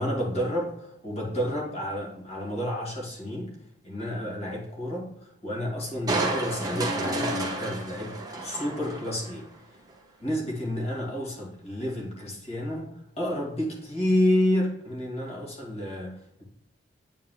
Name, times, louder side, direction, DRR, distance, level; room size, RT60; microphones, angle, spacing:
voice 1, 0.0-3.5 3.8-9.5 10.2-16.4, left 1 dB, 35° left, -2 dB, 2.0 m, -30 dB
Crushing, 6.1-9.4 9.9-10.0, right 2 dB, 20° right, 1.0 m, -31 dB
9.0 x 4.6 x 2.3 m, 0.81 s
head